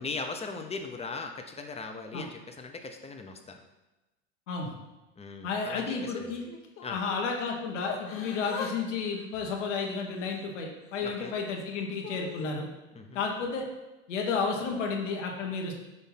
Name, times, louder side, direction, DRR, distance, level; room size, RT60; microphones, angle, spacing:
voice 1, 0.0-3.6 5.2-6.4 6.8-7.0 11.0-11.3 12.9-13.2, left 4 dB, 15° left, 4 dB, 0.7 m, -39 dB
voice 2, 5.4-6.4 6.9-12.7 13.1-13.6 14.1-15.7, left 4 dB, 90° left, 1 dB, 1.1 m, -32 dB
Yell / Crying sobbing, 6.0-7.2 7.9-8.8 9.0-10.4 10.9-12.5 13.2-13.5, left 6 dB, 35° left, 1.0 m, -42 dB
6.2 x 2.7 x 5.5 m, 1.0 s
hypercardioid pair, 100°, 36 cm